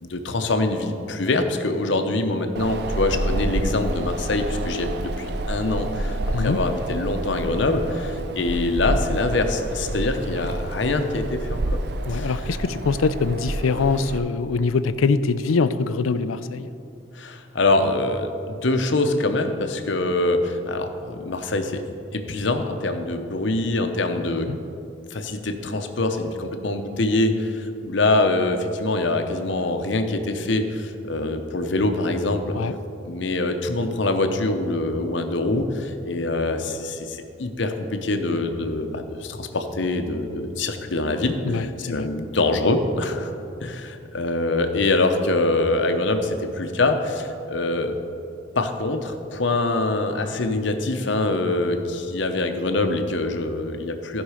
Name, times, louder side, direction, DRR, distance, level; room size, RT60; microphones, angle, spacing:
voice 1, 0.0-11.8 12.1-12.3 17.1-21.8 22.1-24.5 25.1-32.6 33.0-43.3 43.6-48.0 48.6-54.2, left 2 dB, 65° left, 6 dB, 0.8 m, -24 dB
Wind, 2.6-14.2, right 1 dB, 55° right, 0.5 m, -29 dB
voice 2, 12.1-16.7 24.5-24.6 32.5-32.7 41.4-42.1, left 4 dB, 85° left, 13 dB, 0.4 m, -23 dB
15.0 x 5.4 x 4.9 m, 2.7 s
head